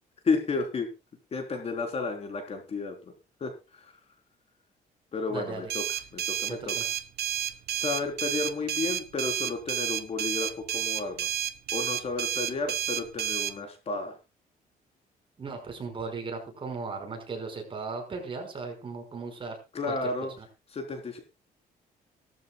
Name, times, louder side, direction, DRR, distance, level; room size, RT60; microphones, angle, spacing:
voice 1, 0.2-0.9 1.3-3.0 3.4-3.8 5.1-5.8 6.1-6.8 7.7-11.3 11.7-14.1 19.7-20.3 20.7-21.2, left 4 dB, 40° left, 5 dB, 4.1 m, -32 dB
voice 2, 5.3-5.6 6.5-6.8 15.4-19.6 19.8-20.5, right 4 dB, 35° right, 3 dB, 5.6 m, -37 dB
sound 1, 5.7-13.5, right 10 dB, 85° right, 0.9 m, -31 dB
18.5 x 14.0 x 2.4 m, 0.30 s
cardioid pair, 135°, 16 cm